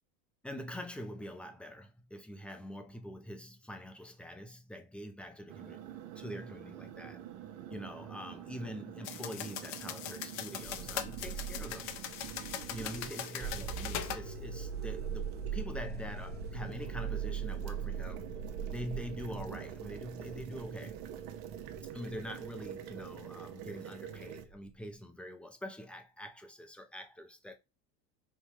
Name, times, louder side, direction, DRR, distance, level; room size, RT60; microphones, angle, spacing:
voice 1, 0.4-5.8 6.2-7.2 7.7-12.0 12.7-18.3 18.7-21.0 21.9-27.5, equal, 5° left, 0.5 m, -44 dB
sound 1, 5.5-24.5, right 9 dB, 65° right, 0.9 m, -46 dB
sound 2, 9.0-14.2, left 10 dB, 50° left, 0.6 m, -41 dB
sound 3, 10.6-24.8, right 7 dB, 30° right, 1.0 m, -42 dB
5.3 x 2.2 x 3.1 m
cardioid pair, 140°, 34 cm